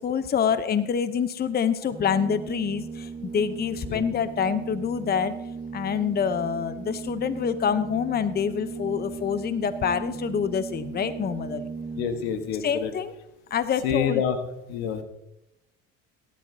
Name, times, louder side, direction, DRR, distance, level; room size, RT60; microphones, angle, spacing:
voice 1, 0.0-5.5 5.7-11.7 12.6-13.1 13.5-14.2, left 7 dB, 30° left, 13 dB, 0.8 m, -26 dB
Organ, 1.8-12.5, right 5 dB, 20° right, 0.5 m, -37 dB
voice 2, 12.0-12.9 13.8-14.4 14.7-15.0, left 8 dB, 85° left, 8 dB, 1.4 m, -27 dB
17.5 x 11.5 x 2.8 m, 0.86 s
supercardioid pair, 85°, 31 cm